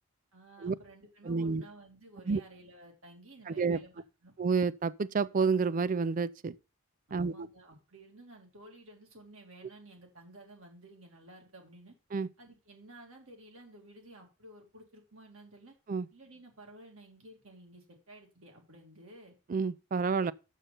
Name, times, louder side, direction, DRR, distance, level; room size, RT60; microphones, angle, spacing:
voice 1, 0.3-4.3 7.1-12.0 12.4-15.7 16.1-19.3, right 1 dB, 75° right, 2.5 m, -54 dB
voice 2, 1.2-1.6 2.3-2.4 3.5-3.8 4.4-6.5 7.1-7.5 12.1-12.3 15.9-16.1 19.5-20.3, right 5 dB, 40° right, 0.3 m, -29 dB
6.7 x 6.5 x 5.7 m
head